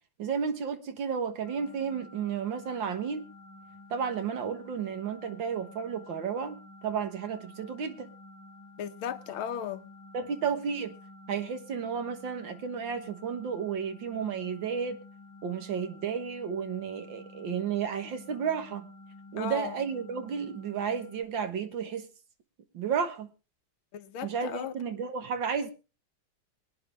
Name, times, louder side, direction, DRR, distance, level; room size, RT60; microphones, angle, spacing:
voice 1, 0.2-3.2 3.9-6.6 6.8-8.1 10.1-10.9 11.3-15.0 15.4-18.9 19.3-22.1 22.7-23.3 24.2-25.7, right 7 dB, 65° right, 2.1 m, -32 dB
sound 1, 1.4-21.2, left 2 dB, 45° left, 2.9 m, -51 dB
voice 2, 8.8-9.9 19.4-19.8 23.9-24.7, left 9 dB, 80° left, 1.7 m, -36 dB
23.0 x 9.6 x 3.4 m
omnidirectional pair, 2.2 m